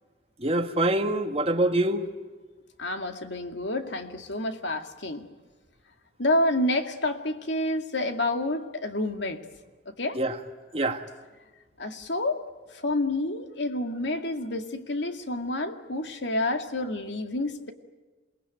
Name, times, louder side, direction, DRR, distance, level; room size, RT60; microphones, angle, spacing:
voice 1, 0.4-2.1 10.1-10.4 10.7-11.0, right 1 dB, 30° right, 6 dB, 1.6 m, -25 dB
voice 2, 2.8-5.3 6.2-9.4 9.9-10.2 11.8-12.4 12.7-17.7, left 1 dB, 75° left, 6 dB, 2.2 m, -29 dB
28.0 x 20.5 x 9.3 m, 1.2 s
head